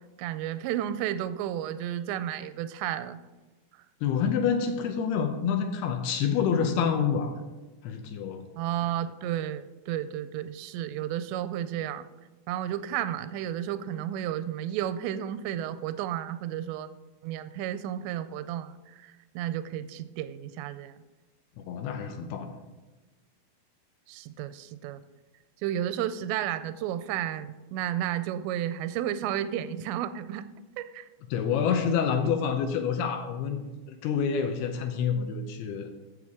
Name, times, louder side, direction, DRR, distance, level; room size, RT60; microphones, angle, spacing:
voice 1, 0.2-3.2 8.6-12.0 12.5-16.9 17.2-21.0 24.1-25.0 25.6-30.5 30.8-31.1, right 11 dB, 85° right, 13 dB, 2.7 m, -32 dB
voice 2, 4.0-7.3 7.8-8.4 21.7-22.5 31.3-33.6 34.0-36.0, left 7 dB, 75° left, 6 dB, 2.5 m, -27 dB
14.5 x 6.9 x 3.6 m, 1.2 s
omnidirectional pair, 5.1 m